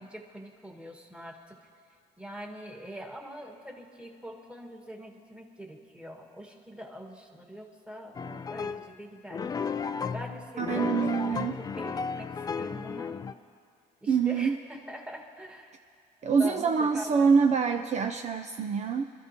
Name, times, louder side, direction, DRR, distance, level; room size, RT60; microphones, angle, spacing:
voice 1, 0.0-1.6 2.2-9.5 10.0-13.2 14.0-15.7 16.4-17.3, equal, 5° right, 2 dB, 1.6 m, -43 dB
sound 1, 8.1-8.9 9.3-13.3, left 5 dB, 20° left, 0.4 m, -33 dB
voice 2, 10.6-11.6 14.1-14.6 16.2-19.0, right 5 dB, 40° right, 5 dB, 0.5 m, -25 dB
25.5 x 13.5 x 2.9 m, 2.3 s
cardioid pair, 110°, 17 cm